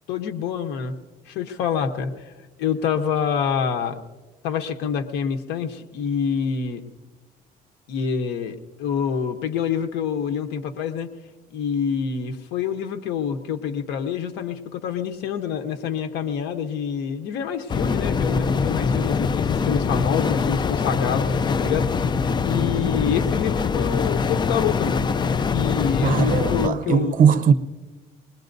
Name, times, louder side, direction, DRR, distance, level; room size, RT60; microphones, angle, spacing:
voice 1, 0.1-0.9 1.3-2.3 2.6-4.0 4.4-6.8 7.9-11.1 11.5-22.1 22.4-25.1 25.5-27.1, left 7 dB, 90° left, 0.9 m, -26 dB
sound 1, 17.7-26.7, left 5 dB, 25° left, 0.5 m, -23 dB
voice 2, 26.0-27.5, right 7 dB, 55° right, 0.8 m, -19 dB
24.0 x 20.5 x 2.6 m
cardioid pair, 110°, 17 cm